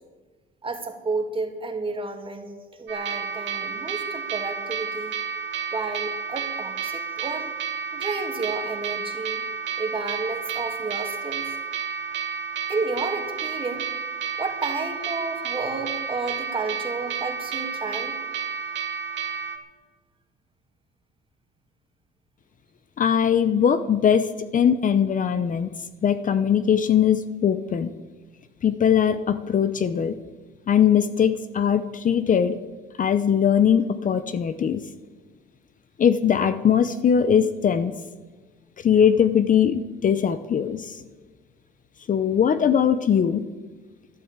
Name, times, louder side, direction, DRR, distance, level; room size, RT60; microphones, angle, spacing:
voice 1, 0.6-2.5 2.8-5.2 5.7-7.5 7.9-9.5 9.8-11.5 12.7-13.9 14.4-18.2, right 3 dB, 25° right, 4 dB, 2.3 m, -31 dB
sound 1, 2.9-19.6, right 6 dB, 65° right, 2.0 m, -31 dB
voice 2, 23.0-24.3 24.5-25.7 26.0-27.9 28.6-30.1 30.7-32.6 33.0-34.8 36.0-37.9 38.8-41.0 42.1-43.4, left 8 dB, 40° left, 12 dB, 0.7 m, -20 dB
12.5 x 11.0 x 8.1 m, 1.3 s
cardioid pair, 115°, 20 cm